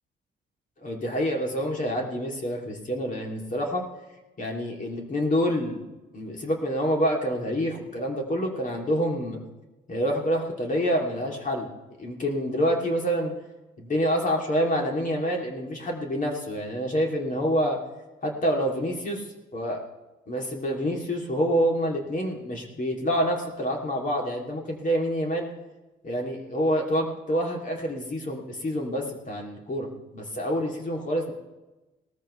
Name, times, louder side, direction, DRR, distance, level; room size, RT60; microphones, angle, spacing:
voice 1, 0.8-3.8 4.4-5.8 6.1-9.4 9.9-11.7 12.0-13.3 13.8-17.8 18.2-19.2 19.5-19.8 20.3-25.5 26.0-31.3, equal, 40° left, 0 dB, 3.1 m, -27 dB
18.5 x 14.0 x 3.3 m, 1.1 s
cardioid pair, 90°, 20 cm